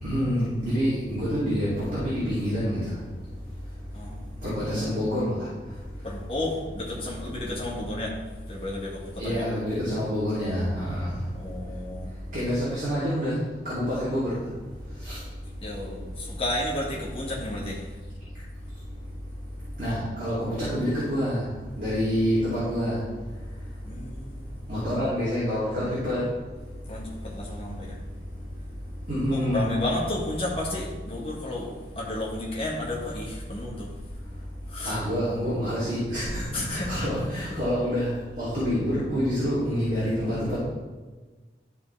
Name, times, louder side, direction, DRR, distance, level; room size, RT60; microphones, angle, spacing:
voice 1, 0.0-1.7 2.0-2.8 4.4-5.4 9.2-11.1 12.3-13.3 13.6-14.3 15.0-15.2 19.8-21.4 21.8-23.0 24.7-26.2 29.1-29.7 34.8-38.1 38.4-40.6, equal, 50° right, -12 dB, 2.6 m, -27 dB
voice 2, 3.9-4.5 6.0-8.2 8.5-9.4 11.3-12.1 15.6-18.0 23.8-24.5 26.9-28.0 29.3-33.9 34.7-35.0 36.5-37.1, left 1 dB, 30° left, -4 dB, 1.7 m, -32 dB
12.5 x 4.2 x 3.3 m, 1.3 s
head